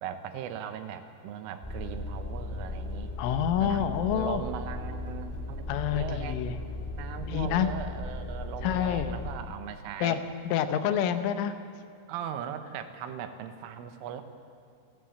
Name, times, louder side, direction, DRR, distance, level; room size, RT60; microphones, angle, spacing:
voice 1, 0.0-3.1 3.6-5.7 6.0-6.4 7.0-10.2 10.9-11.2 12.1-14.2, right 9 dB, 85° right, 9 dB, 3.6 m, -39 dB
sound 1, 1.6-9.3, left 2 dB, 5° left, 1.4 m, -37 dB
voice 2, 3.2-4.4 5.7-6.5 7.2-7.7 8.6-9.1 10.0-11.5, left 9 dB, 80° left, 10 dB, 3.4 m, -28 dB
28.5 x 11.5 x 8.5 m, 2.4 s
omnidirectional pair, 5.8 m